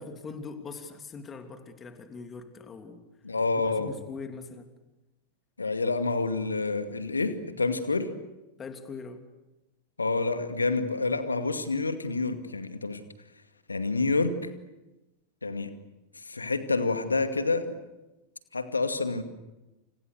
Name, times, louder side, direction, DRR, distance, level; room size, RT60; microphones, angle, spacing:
voice 1, 0.0-3.0 3.5-4.7 8.6-9.2, left 4 dB, 20° left, 6 dB, 3.0 m, -42 dB
voice 2, 3.2-3.9 5.6-8.1 10.0-13.0 13.7-14.3 15.4-15.7 16.3-17.8 18.5-19.2, left 3 dB, 80° left, 8 dB, 2.3 m, -28 dB
29.5 x 29.0 x 6.7 m, 1.0 s
figure-of-eight pair, 90°, 0 cm